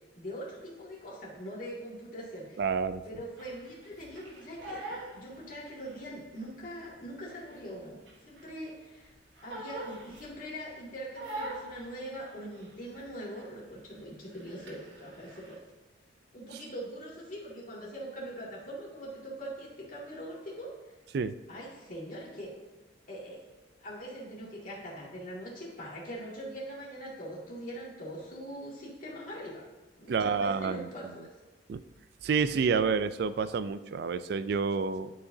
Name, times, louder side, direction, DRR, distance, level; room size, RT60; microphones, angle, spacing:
voice 1, 0.2-2.6 3.1-8.0 8.3-9.1 9.4-15.6 16.3-20.7 21.5-22.5 23.1-23.5 23.8-29.6 30.0-31.3, equal, 45° left, -5 dB, 2.2 m, -42 dB
voice 2, 2.6-3.0 16.5-16.6 21.1-21.4 30.1-30.9 31.7-31.8 32.2-35.1, right 5 dB, 55° right, 13 dB, 0.3 m, -29 dB
Crying sobbing, 3.4-6.0 6.4-8.6 9.0-10.7 11.1-13.1 13.4-13.7 13.9-15.6, right 1 dB, 75° right, 1.6 m, -43 dB
11.5 x 4.9 x 2.7 m, 1.2 s
head